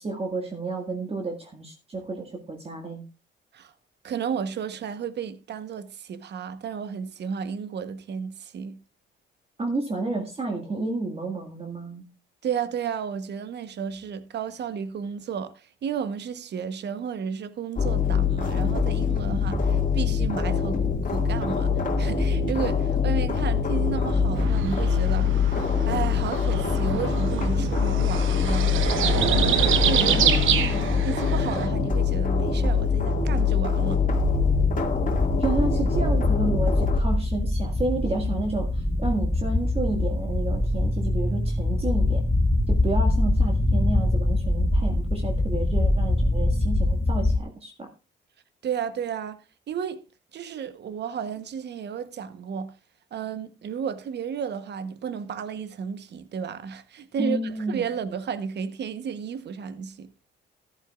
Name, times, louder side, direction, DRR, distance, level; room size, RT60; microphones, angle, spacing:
voice 1, 0.0-3.0 9.6-12.0 30.0-31.0 35.4-42.2 42.7-47.9 57.2-57.9, right 2 dB, 30° right, 1.9 m, -31 dB
voice 2, 4.0-8.8 12.4-25.6 25.9-28.8 29.6-30.4 31.0-34.1 48.6-50.0 50.3-52.8 53.1-60.1, right 7 dB, 60° right, 1.1 m, -33 dB
sound 1, 17.8-37.0, left 5 dB, 40° left, 2.2 m, -24 dB
sound 2, 24.4-31.7, right 9 dB, 80° right, 1.3 m, -27 dB
sound 3, 34.2-47.4, left 1 dB, 10° left, 1.0 m, -24 dB
13.5 x 12.0 x 2.4 m
cardioid pair, 90°, 20 cm